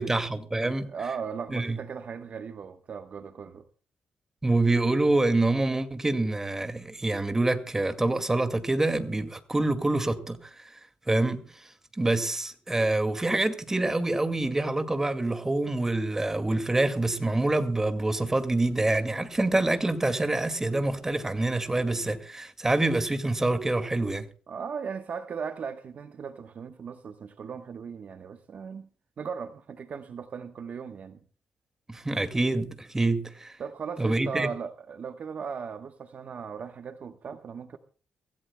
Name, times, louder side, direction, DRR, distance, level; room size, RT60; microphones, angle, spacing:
voice 1, 0.0-0.9 1.5-1.8 4.4-10.8 11.1-11.7 12.0-24.3 31.9-33.6 34.0-34.5, right 2 dB, 15° right, 2.1 m, -26 dB
voice 2, 0.8-3.6 24.5-28.9 29.2-31.2 33.6-37.8, right 6 dB, 55° right, 1.1 m, -37 dB
24.5 x 16.0 x 2.2 m
cardioid pair, 115°, 3 cm